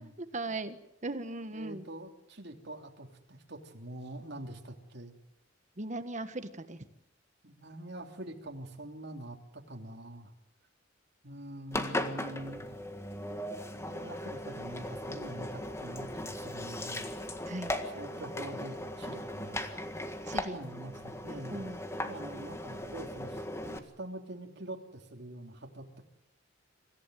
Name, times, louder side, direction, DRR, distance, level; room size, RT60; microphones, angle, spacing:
voice 1, 0.2-1.9 5.8-6.8 17.5-17.7 20.3-20.6 21.5-21.8, right 2 dB, 40° right, 10 dB, 1.5 m, -38 dB
voice 2, 1.5-5.2 7.4-10.3 11.2-12.7 13.7-17.1 17.8-19.6 20.5-21.6 22.1-26.1, right 1 dB, 60° right, 3 dB, 3.2 m, -45 dB
Engine, 11.7-23.8, left 1 dB, 15° left, 1.8 m, -38 dB
25.0 x 15.5 x 9.3 m, 0.85 s
head